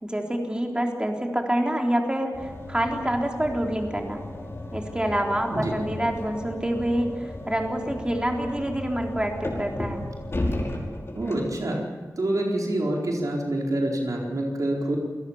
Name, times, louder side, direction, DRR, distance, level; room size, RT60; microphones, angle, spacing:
voice 1, 0.0-4.2 4.7-10.0, right 1 dB, 15° right, 2 dB, 4.0 m, -27 dB
sound 1, 2.3-11.5, left 1 dB, 45° left, 5.3 m, -34 dB
voice 2, 11.1-11.8 12.2-15.0, right 1 dB, 70° right, 0 dB, 4.3 m, -26 dB
28.0 x 18.5 x 7.4 m, 1.4 s
wide cardioid pair, 75°, 6 cm